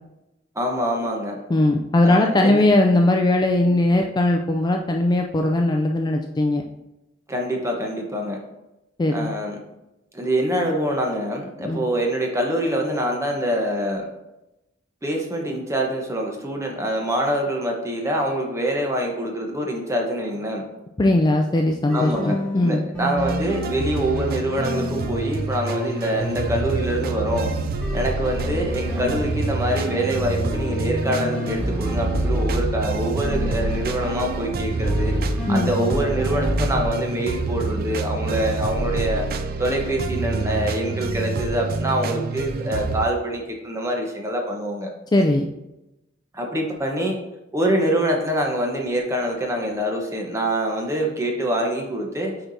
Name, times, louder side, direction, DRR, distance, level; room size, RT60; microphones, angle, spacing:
voice 1, 0.5-1.4 2.0-2.6 7.3-8.4 9.1-9.6 10.1-14.1 15.0-20.6 21.9-27.5 27.9-35.2 35.5-39.3 39.6-44.9 46.3-47.2 47.5-52.3, right 1 dB, 15° right, 0 dB, 1.0 m, -25 dB
voice 2, 1.5-6.6 9.0-9.3 11.6-11.8 21.0-22.8 35.5-35.7 45.1-45.5, left 1 dB, 20° left, 2 dB, 0.4 m, -19 dB
sound 1, 21.9-32.8 33.2-34.6 34.8-36.9, equal, 5° left, 1.8 m, -29 dB
sound 2, 23.2-43.1, right 3 dB, 50° right, 0.4 m, -28 dB
7.7 x 4.5 x 2.7 m, 0.93 s
head